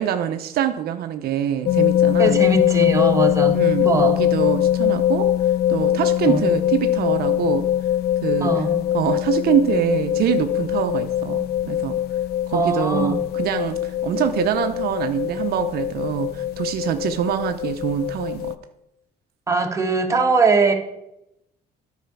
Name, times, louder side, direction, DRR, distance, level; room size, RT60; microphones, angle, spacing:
voice 1, 0.0-2.4 3.5-5.3 5.7-7.7 8.2-8.5 8.9-12.0 12.5-18.5, right 10 dB, 65° right, 7 dB, 0.6 m, -24 dB
sound 1, 1.7-18.5, left 11 dB, 70° left, 0.5 m, -22 dB
voice 2, 2.2-4.2 6.3-6.5 8.4-8.8 12.5-13.2 19.5-20.7, right 3 dB, 20° right, 2 dB, 1.4 m, -21 dB
9.3 x 4.9 x 6.9 m, 0.87 s
cardioid pair, 110°, 17 cm